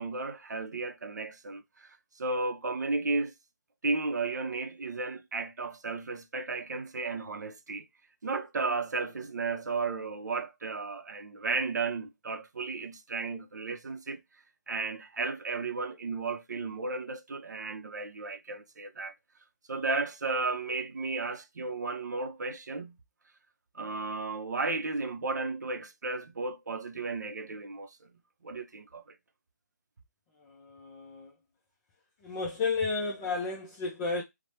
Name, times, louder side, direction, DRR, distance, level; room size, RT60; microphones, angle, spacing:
voice 1, 0.0-3.3 3.8-7.9 8.2-14.2 14.7-19.1 19.7-23.0 23.7-28.1 28.4-29.2, right 3 dB, 85° right, 0.5 m, -34 dB
voice 2, 30.4-31.3 32.2-34.2, left 4 dB, 20° left, 0.4 m, -32 dB
3.0 x 2.1 x 2.7 m
hypercardioid pair, 155°, 9 cm